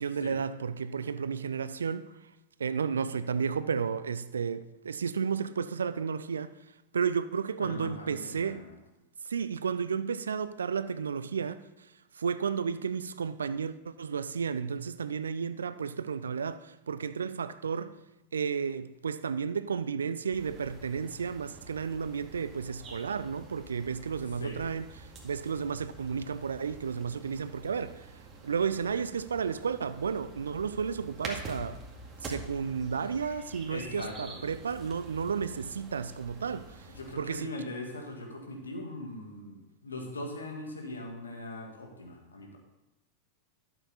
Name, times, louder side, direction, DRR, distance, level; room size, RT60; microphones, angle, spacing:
voice 1, 0.0-2.1 2.6-6.5 6.9-8.6 9.3-11.6 12.2-17.9 18.3-28.1 28.4-31.8 32.2-36.9 37.2-37.5, right 6 dB, 70° right, 0.4 m, -32 dB
voice 2, 7.6-8.8 24.4-24.6 33.7-34.4 36.9-42.6, left 1 dB, 75° left, 1.9 m, -41 dB
sound 1, 20.3-37.1, right 2 dB, 25° right, 2.1 m, -47 dB
12.5 x 7.1 x 4.1 m
figure-of-eight pair, 90°, 0 cm